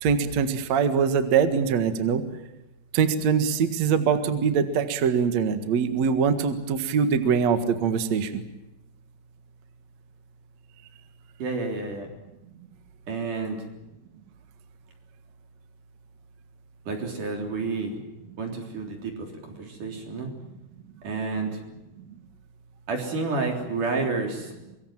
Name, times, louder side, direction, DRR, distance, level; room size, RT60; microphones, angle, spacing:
voice 1, 0.0-2.2 2.9-8.4, right 6 dB, 65° right, 9 dB, 1.8 m, -23 dB
voice 2, 11.4-12.1 13.1-13.6 16.9-18.0 18.4-20.3 21.0-21.6 22.9-24.5, right 3 dB, 45° right, 3 dB, 4.7 m, -30 dB
25.5 x 23.0 x 7.5 m, 0.95 s
omnidirectional pair, 5.7 m